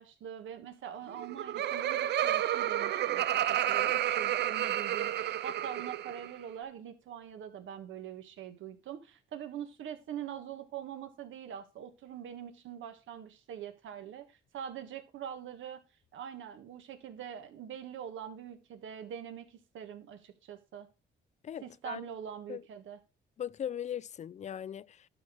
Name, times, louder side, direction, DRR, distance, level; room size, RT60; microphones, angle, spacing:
voice 1, 0.0-15.8 16.1-20.9 21.6-23.0, right 9 dB, 75° right, 1.6 m, -43 dB
Laughter, 1.1-6.3, right 12 dB, 60° right, 0.5 m, -31 dB
voice 2, 21.4-22.0 22.5-22.6 23.4-25.1, left 9 dB, 35° left, 0.4 m, -39 dB
12.0 x 4.3 x 4.8 m
cardioid pair, 90°, 20 cm